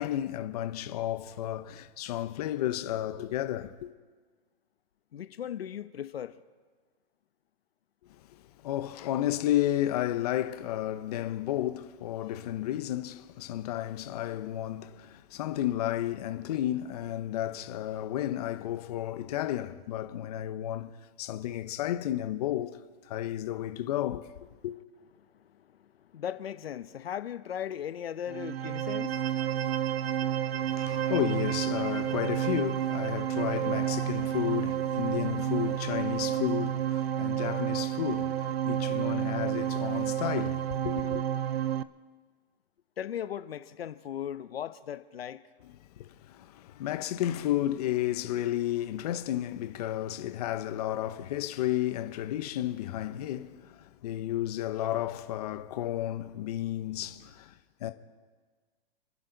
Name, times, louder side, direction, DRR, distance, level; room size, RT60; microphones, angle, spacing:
voice 1, 0.0-3.9 8.6-20.9 21.2-22.8 23.1-24.3 24.6-24.7 30.7-41.2 46.0-57.5 57.8-57.9, left 13 dB, 40° left, 0.9 m, -32 dB
voice 2, 5.1-6.4 12.2-12.3 25.3-30.4 43.0-45.4, left 9 dB, 90° left, 0.9 m, -38 dB
sound 1, 28.3-41.8, right 10 dB, 85° right, 0.7 m, -30 dB
28.5 x 10.5 x 4.0 m
hypercardioid pair, 160°, 29 cm